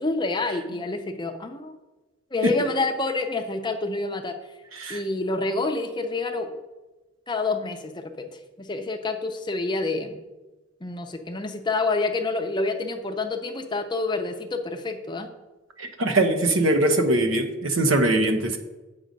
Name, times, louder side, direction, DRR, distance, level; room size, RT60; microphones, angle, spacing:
voice 1, 0.0-1.8 2.3-4.4 4.9-6.6 7.3-8.3 8.6-10.2 10.8-15.3, left 3 dB, 25° left, 5 dB, 0.7 m, -28 dB
voice 2, 15.8-18.6, right 2 dB, 90° right, 6 dB, 1.0 m, -22 dB
7.7 x 5.5 x 5.2 m, 1.1 s
head